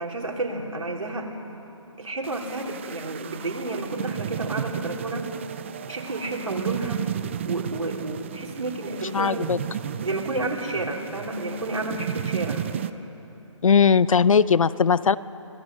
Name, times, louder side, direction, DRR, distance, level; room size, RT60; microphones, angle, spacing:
voice 1, 0.0-1.3 2.0-5.3 5.9-7.1 7.5-9.5 10.0-12.7, right 2 dB, 85° right, 0 dB, 3.5 m, -31 dB
sound 1, 2.2-12.9, right 9 dB, 25° right, 0.4 m, -33 dB
voice 2, 9.1-9.6 13.6-15.2, left 6 dB, 80° left, 18 dB, 0.6 m, -19 dB
25.5 x 17.5 x 6.6 m, 3.0 s
hypercardioid pair, 155°, 17 cm